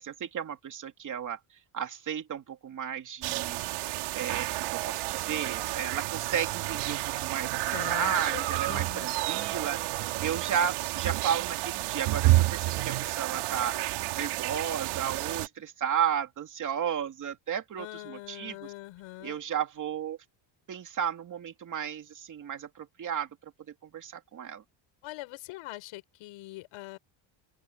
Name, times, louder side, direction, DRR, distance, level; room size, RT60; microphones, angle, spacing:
voice 1, 0.0-1.4 1.7-3.6 4.1-9.8 10.2-13.7 14.1-18.6 19.2-20.2 20.7-23.3 23.9-24.6, right 8 dB, 40° right, 2.8 m, -33 dB
sound 1, 3.2-15.5, right 18 dB, 90° right, 4.5 m, -30 dB
voice 2, 7.7-9.1 17.8-19.4 25.0-27.0, left 18 dB, 85° left, 6.2 m, -43 dB
open air
cardioid pair, 155°, 49 cm